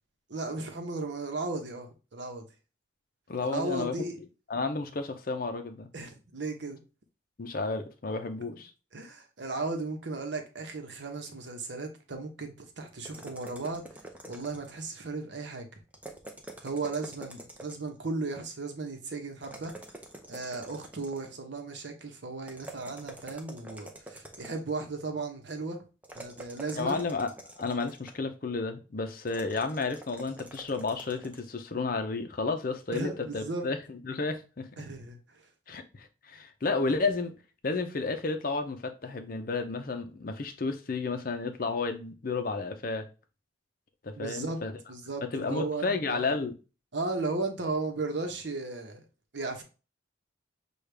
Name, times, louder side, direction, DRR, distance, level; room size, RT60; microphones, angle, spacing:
voice 1, 0.3-2.4 3.4-4.2 5.9-6.8 8.9-14.0 14.3-15.7 16.6-19.7 20.3-25.8 26.1-27.0 32.9-33.7 34.8-35.4 44.2-44.6 44.9-46.4 46.9-49.0 49.3-49.6, right 3 dB, 65° right, 0.9 m, -35 dB
voice 2, 3.3-4.0 4.5-5.9 7.4-8.7 26.8-27.3 27.6-34.8 35.7-37.3 37.6-43.1 44.0-44.7 45.3-46.5, left 3 dB, 45° left, 0.6 m, -32 dB
sound 1, 13.0-14.9 15.9-18.0 19.4-21.4 22.5-24.8 26.0-28.3 29.3-31.5, right 2 dB, 10° right, 0.6 m, -46 dB
6.4 x 2.4 x 3.3 m
head